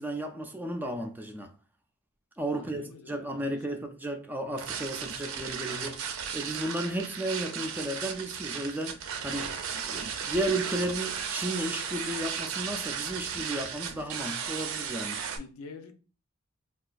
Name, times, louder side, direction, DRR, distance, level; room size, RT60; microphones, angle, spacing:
voice 1, 0.0-1.5 2.4-6.0 6.3-9.5 9.8-15.2, right 1 dB, 10° right, 0.3 m, -34 dB
voice 2, 2.5-3.8 15.1-15.9, left 4 dB, 80° left, 0.5 m, -47 dB
sound 1, 4.6-15.4, right 7 dB, 75° right, 0.4 m, -35 dB
3.8 x 2.3 x 2.4 m
head